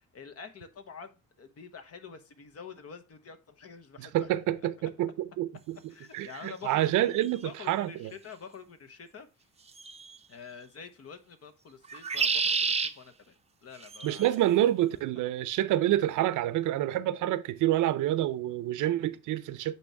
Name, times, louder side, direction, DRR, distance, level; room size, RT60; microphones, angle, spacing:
voice 1, 0.0-4.3 5.9-9.3 10.3-14.3 18.8-19.2, left 6 dB, 55° left, 1.2 m, -47 dB
voice 2, 4.0-5.8 6.1-8.1 14.0-19.7, right 13 dB, 85° right, 0.6 m, -28 dB
sound 1, 7.2-7.3 9.8-10.2 11.9-12.9 13.8-14.3, right 5 dB, 20° right, 0.6 m, -29 dB
8.6 x 3.1 x 4.7 m
cardioid pair, 90°, 30 cm